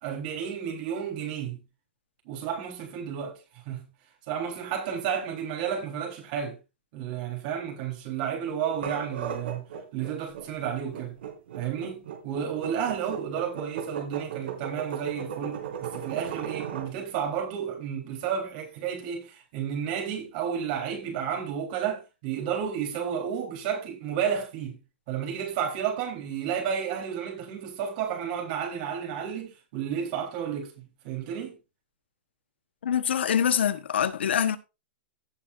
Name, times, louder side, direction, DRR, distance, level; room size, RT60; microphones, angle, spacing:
voice 1, 0.0-1.6 2.3-3.9 4.3-6.6 6.9-11.2 11.5-24.8 25.1-31.5, right 8 dB, 45° right, 3.8 m, -32 dB
sound 1, 8.7-16.9, right 8 dB, 70° right, 3.0 m, -36 dB
voice 2, 32.8-34.6, left 8 dB, 85° left, 1.2 m, -25 dB
16.5 x 7.3 x 2.6 m
hypercardioid pair, 155°, 6 cm